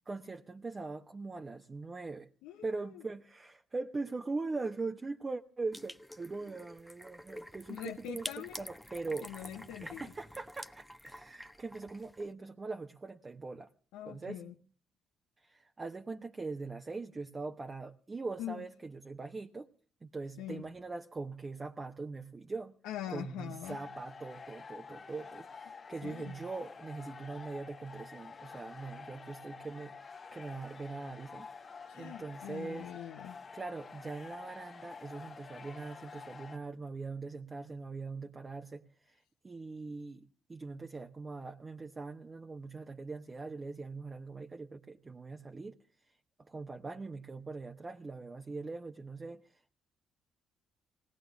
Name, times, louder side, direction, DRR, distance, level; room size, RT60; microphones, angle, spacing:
voice 1, 0.1-2.3 2.6-8.3 8.6-9.3 9.8-13.7 14.0-14.4 15.4-19.7 20.0-22.7 23.1-31.5 31.7-32.9 33.5-39.2 39.4-45.7 46.5-49.7, right 3 dB, 30° right, 5 dB, 1.0 m, -41 dB
voice 2, 2.4-3.0 7.7-8.6 9.1-10.1 13.9-14.5 18.4-18.6 20.4-20.7 22.8-23.8 26.0-26.3 31.8-33.4, left 11 dB, 70° left, 2 dB, 0.9 m, -43 dB
sound 1, 5.7-12.3, left 1 dB, 5° left, 0.9 m, -48 dB
sound 2, 23.6-36.6, left 5 dB, 40° left, 1.5 m, -49 dB
20.0 x 17.5 x 3.5 m, 0.43 s
hypercardioid pair, 45°, 0 cm